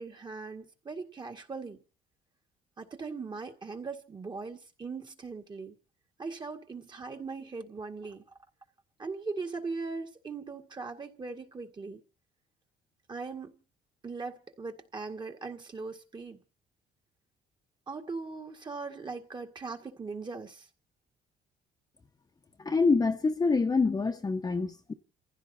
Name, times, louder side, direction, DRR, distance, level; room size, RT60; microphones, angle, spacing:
voice 1, 0.0-1.8 2.8-5.8 6.2-8.2 9.0-12.0 13.1-13.6 14.0-16.4 17.9-20.7, right 4 dB, 25° right, 2.0 m, -39 dB
voice 2, 22.6-24.9, left 4 dB, 20° left, 1.2 m, -26 dB
29.0 x 15.5 x 2.8 m
cardioid pair, 110°, 17 cm